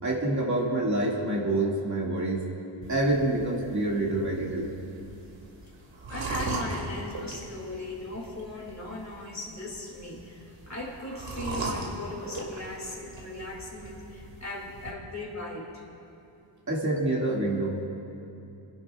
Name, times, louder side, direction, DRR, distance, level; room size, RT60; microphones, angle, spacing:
voice 1, 0.0-2.5 2.9-4.7 16.7-17.9, right 2 dB, 35° right, -3 dB, 2.1 m, -27 dB
sound 1, 2.8-14.9, right 3 dB, 70° right, 2.3 m, -39 dB
voice 2, 6.1-15.8, left 2 dB, 35° left, -2 dB, 2.8 m, -38 dB
29.5 x 11.0 x 2.4 m, 2.8 s
cardioid pair, 60°, 48 cm